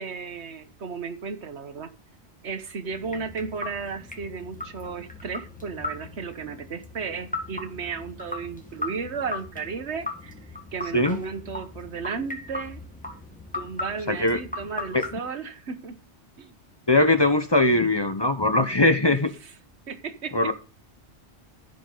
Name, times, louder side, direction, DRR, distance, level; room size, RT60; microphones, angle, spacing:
voice 1, 0.0-1.9 2.4-10.3 10.7-12.8 13.5-16.0 16.4-16.5 19.4-19.5 19.9-20.5, right 5 dB, 70° right, 9 dB, 1.4 m, -34 dB
sound 1, 2.9-15.2, left 2 dB, 5° left, 1.5 m, -38 dB
voice 2, 14.1-14.4 14.9-15.0 16.9-19.3 20.3-20.5, left 2 dB, 25° left, 8 dB, 0.8 m, -21 dB
14.5 x 5.5 x 3.9 m, 0.36 s
omnidirectional pair, 1.2 m